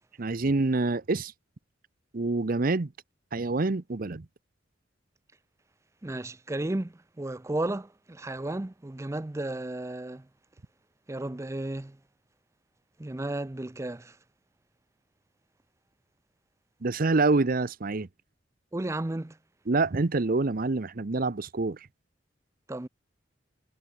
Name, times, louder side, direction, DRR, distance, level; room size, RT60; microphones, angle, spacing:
voice 1, 0.2-1.3 2.1-2.9 3.3-4.3 16.8-18.1 19.7-21.8, right 3 dB, 45° right, 0.7 m, -26 dB
voice 2, 6.0-10.3 11.1-12.0 13.0-14.2 18.7-19.4 22.7-22.9, right 1 dB, 15° right, 0.5 m, -33 dB
head